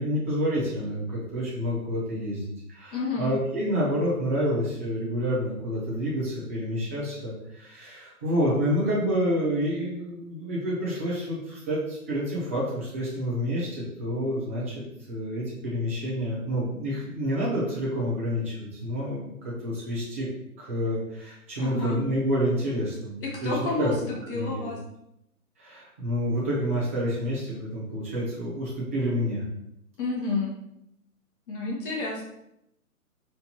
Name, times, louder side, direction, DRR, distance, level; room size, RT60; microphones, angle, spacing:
voice 1, 0.0-20.3 20.6-23.9 24.3-24.7 25.6-29.4, equal, 10° right, -6 dB, 0.4 m, -28 dB
voice 2, 2.9-3.3 21.6-22.0 23.2-24.8 30.0-30.5 31.5-32.3, left 3 dB, 35° left, -2 dB, 1.0 m, -30 dB
4.4 x 2.6 x 4.2 m, 0.81 s
figure-of-eight pair, 125°, 45 cm